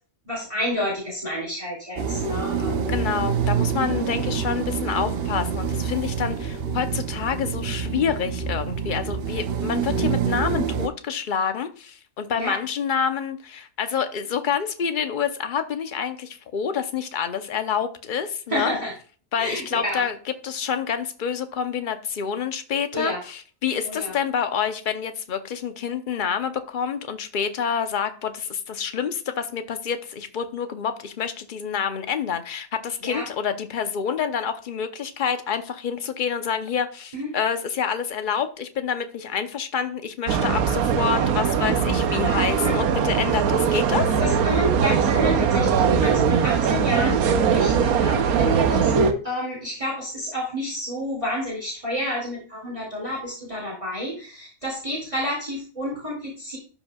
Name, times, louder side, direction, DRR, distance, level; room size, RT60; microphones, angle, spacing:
voice 1, 0.3-2.8 12.3-12.6 18.5-18.9 19.4-20.0 22.9-23.2 23.8-24.1 33.0-33.3 37.1-37.3 42.6-42.7 44.2-56.6, equal, 20° right, 2.6 m, -29 dB
sound 1, 2.0-10.9, right 7 dB, 55° right, 0.8 m, -26 dB
voice 2, 2.9-18.7 19.3-20.2 20.4-44.2, left 7 dB, 45° left, 0.8 m, -27 dB
sound 2, 40.3-49.1, right 7 dB, 85° right, 1.2 m, -21 dB
12.0 x 5.4 x 2.3 m
omnidirectional pair, 1.5 m